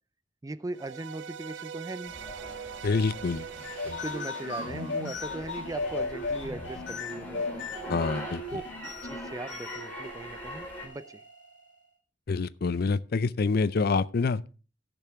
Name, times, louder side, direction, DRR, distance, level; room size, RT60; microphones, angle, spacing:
voice 1, 0.4-2.1 3.8-7.7 8.5-11.2, right 2 dB, 20° right, 0.4 m, -39 dB
sound 1, 0.7-6.0, right 7 dB, 75° right, 0.4 m, -43 dB
sound 2, 2.0-10.9, equal, 10° left, 3.1 m, -43 dB
voice 2, 2.8-3.5 7.9-8.4 12.3-14.4, left 4 dB, 55° left, 0.5 m, -26 dB
sound 3, 3.5-11.8, left 3 dB, 85° left, 2.5 m, -37 dB
16.5 x 6.9 x 3.5 m
head